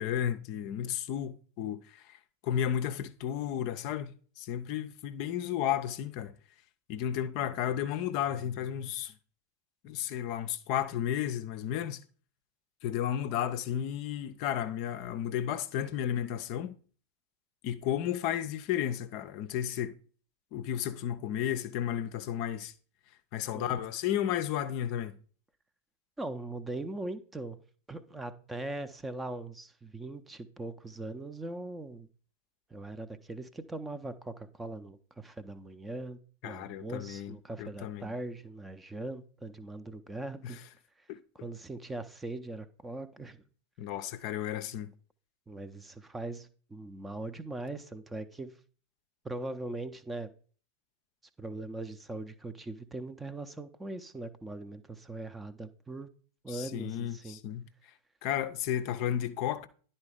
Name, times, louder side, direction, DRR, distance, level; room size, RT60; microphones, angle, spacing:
voice 1, 0.0-2.0 2.4-6.3 6.9-9.1 9.8-12.0 12.8-16.7 17.6-20.0 20.5-22.7 23.3-25.2 36.4-38.1 40.4-40.6 41.1-41.2 43.8-44.9 56.5-57.7 58.2-59.7, left 10 dB, 45° left, 0.5 m, -33 dB
voice 2, 26.2-27.6 27.9-32.1 32.7-40.6 41.3-43.4 45.5-48.5 49.2-50.3 51.4-56.1 56.4-57.4, right 2 dB, 10° right, 0.6 m, -40 dB
10.5 x 4.3 x 5.0 m
figure-of-eight pair, 90°, 0 cm